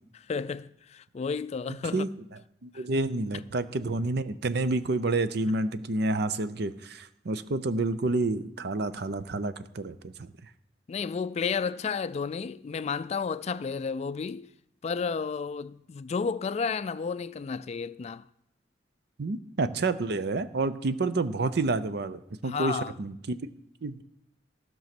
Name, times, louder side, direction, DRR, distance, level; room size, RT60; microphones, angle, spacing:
voice 1, 0.3-2.1 2.7-2.8 10.9-14.5 14.8-18.3 22.4-22.9, left 5 dB, 40° left, 0.3 m, -32 dB
voice 2, 2.6-10.3 19.2-23.4 23.8-24.0, right 2 dB, 65° right, 0.6 m, -29 dB
15.0 x 6.2 x 5.9 m
head